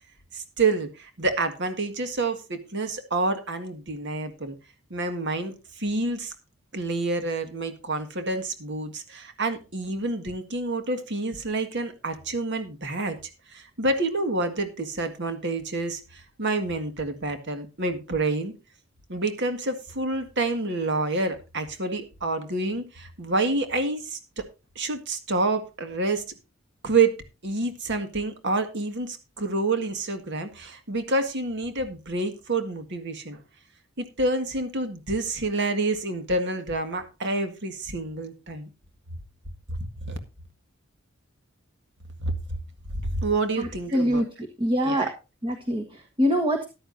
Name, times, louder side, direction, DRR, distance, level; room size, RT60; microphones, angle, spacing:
voice 1, 0.3-4.6 4.9-6.3 6.7-13.2 13.5-18.5 19.1-24.4 24.8-26.2 26.8-27.1 27.4-33.4 34.0-38.7 39.7-40.2 42.2-42.6 42.9-44.2 44.8-45.1, right 2 dB, 60° right, 8 dB, 1.8 m, -28 dB
voice 2, 43.6-44.3 44.6-45.1 45.4-46.7, equal, 25° right, 5 dB, 1.4 m, -24 dB
14.0 x 11.5 x 2.7 m, 0.28 s
head